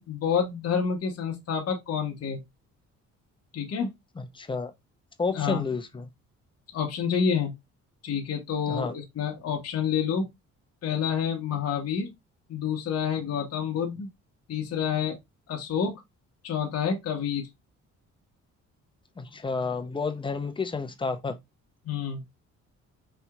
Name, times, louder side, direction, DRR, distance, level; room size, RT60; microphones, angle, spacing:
voice 1, 0.0-2.4 3.5-3.9 5.3-5.6 6.7-7.5 8.0-10.3 10.8-12.1 12.5-14.1 14.5-15.2 15.5-15.9 16.4-17.5 21.8-22.2, left 7 dB, 55° left, 0.9 m, -28 dB
voice 2, 4.2-4.7 5.2-6.1 8.7-8.9 19.2-21.4, left 4 dB, 15° left, 0.6 m, -30 dB
4.2 x 2.8 x 2.3 m
cardioid pair, 90°, 30 cm